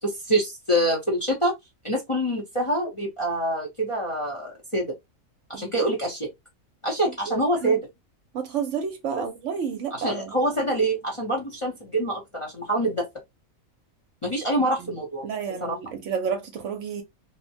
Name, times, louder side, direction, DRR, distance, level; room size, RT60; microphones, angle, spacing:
voice 1, 0.0-1.5 1.8-4.9 5.5-6.3 6.8-7.8 9.2-9.3 9.9-13.1 14.2-15.2 15.6-15.8, right 1 dB, 30° left, 0.6 m, -25 dB
voice 2, 5.5-5.9 7.3-7.7 8.3-10.3 14.8-14.9 15.2-17.0, right 6 dB, 65° right, 0.9 m, -31 dB
3.0 x 2.1 x 2.6 m
omnidirectional pair, 1.5 m